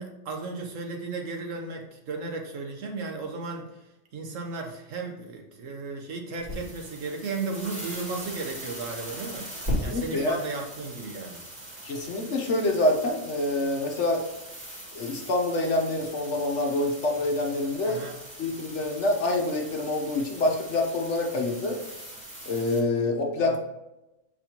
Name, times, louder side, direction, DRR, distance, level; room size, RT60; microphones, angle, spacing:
voice 1, 0.0-3.7 4.1-11.4 17.8-18.2 23.4-23.6, right 3 dB, 85° right, 2 dB, 1.4 m, -35 dB
sound 1, 6.4-22.8, equal, 40° right, 2.5 m, -39 dB
voice 2, 9.7-10.4 11.8-14.2 14.9-18.0 18.4-21.8 22.5-23.6, left 2 dB, 65° left, 2 dB, 1.3 m, -26 dB
6.7 x 4.8 x 2.9 m, 0.93 s
omnidirectional pair, 1.3 m